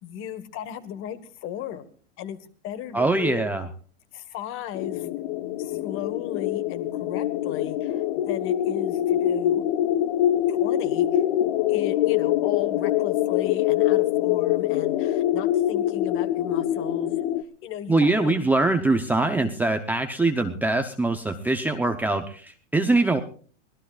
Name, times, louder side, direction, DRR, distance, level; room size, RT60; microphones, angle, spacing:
voice 1, 0.0-1.9 2.2-2.4 2.6-3.5 4.1-5.1 5.6-9.6 10.5-11.2 11.7-17.3 17.6-18.3, left 9 dB, 35° left, 13 dB, 1.5 m, -35 dB
voice 2, 2.9-3.7 17.9-23.2, right 2 dB, 5° right, 5 dB, 0.7 m, -23 dB
sound 1, 4.7-17.4, left 12 dB, 50° left, 1.1 m, -24 dB
24.0 x 18.0 x 2.4 m, 0.43 s
supercardioid pair, 150°, 37 cm